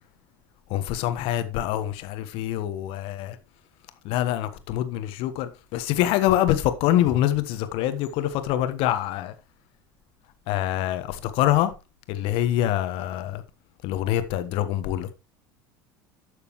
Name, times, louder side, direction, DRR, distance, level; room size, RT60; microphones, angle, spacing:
voice 1, 0.7-3.4 4.0-9.3 10.5-11.7 12.1-13.4 13.8-15.1, left 13 dB, 60° left, 1.3 m, -25 dB
12.0 x 6.7 x 3.2 m
hypercardioid pair, 70°, 11 cm